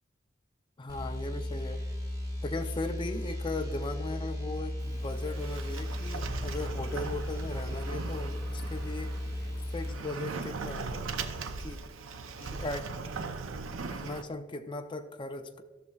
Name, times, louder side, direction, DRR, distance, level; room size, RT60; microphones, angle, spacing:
voice 1, 0.8-1.8 2.4-9.1 9.7-11.1 11.6-11.8 12.4-12.8 13.9-15.6, left 2 dB, 25° left, 6 dB, 0.5 m, -38 dB
sound 1, 0.9-10.0, left 1 dB, 20° right, 2.2 m, -35 dB
Sliding door, 4.8-14.2, right 4 dB, 80° right, 0.6 m, -39 dB
14.0 x 6.4 x 2.4 m, 1.3 s
head